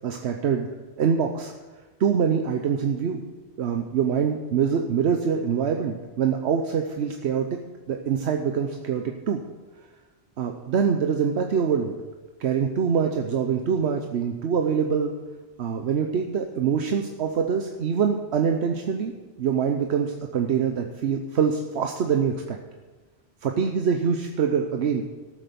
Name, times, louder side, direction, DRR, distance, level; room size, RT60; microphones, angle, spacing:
voice 1, 0.0-0.7 1.0-1.5 2.0-3.2 3.6-7.5 7.9-9.4 10.4-12.0 12.4-15.1 15.6-19.1 19.4-22.6 23.4-25.1, right 7 dB, 75° right, 4 dB, 1.1 m, -24 dB
13.5 x 7.6 x 6.9 m, 1.3 s
omnidirectional pair, 1.1 m